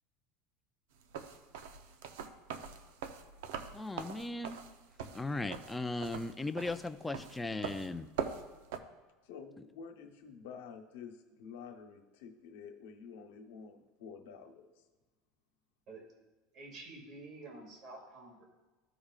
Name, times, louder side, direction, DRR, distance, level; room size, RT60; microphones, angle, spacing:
sound 1, 1.0-8.8, right 7 dB, 80° right, 0.7 m, -42 dB
voice 1, 3.7-4.6 5.1-8.1, left 2 dB, 10° left, 9 dB, 0.4 m, -37 dB
voice 2, 9.2-14.8, left 6 dB, 85° left, 2 dB, 1.1 m, -49 dB
voice 3, 16.5-18.4, right 2 dB, 45° right, 0 dB, 2.2 m, -49 dB
14.5 x 4.9 x 2.4 m, 1.2 s
supercardioid pair, 135°, 0 cm